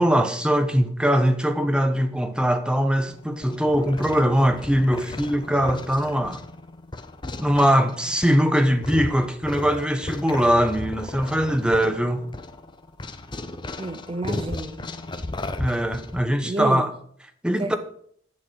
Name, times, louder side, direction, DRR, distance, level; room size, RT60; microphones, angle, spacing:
voice 1, 0.0-6.4 7.4-12.3 15.6-16.9 17.4-17.8, equal, 5° right, 1.0 m, -21 dB
sound 1, 3.1-16.2, left 2 dB, 25° left, 0.8 m, -35 dB
voice 2, 13.8-14.9 16.4-16.9 17.6-17.8, right 2 dB, 30° right, 0.6 m, -30 dB
10.5 x 6.8 x 6.3 m
head